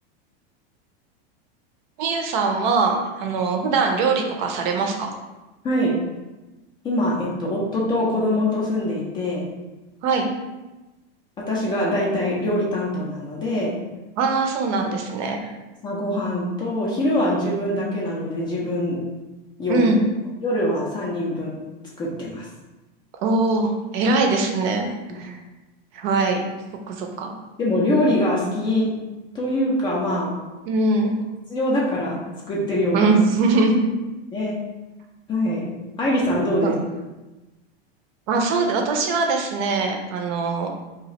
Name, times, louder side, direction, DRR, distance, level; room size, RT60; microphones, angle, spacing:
voice 1, 2.0-5.1 10.0-10.3 14.2-15.5 19.7-20.0 23.2-25.4 25.9-26.4 26.9-27.3 30.7-31.2 32.9-33.9 36.6-36.8 38.3-40.7, right 3 dB, 50° right, 3 dB, 0.6 m, -22 dB
voice 2, 5.6-6.0 6.8-9.5 11.4-13.8 15.8-19.0 19.6-19.8 20.4-21.6 22.0-22.5 25.1-25.2 27.6-29.0 29.3-30.3 31.5-33.1 34.3-34.6 35.3-35.7 36.0-36.7, left 1 dB, 15° left, -4 dB, 0.4 m, -23 dB
2.8 x 2.4 x 4.1 m, 1.1 s
supercardioid pair, 155°, 30 cm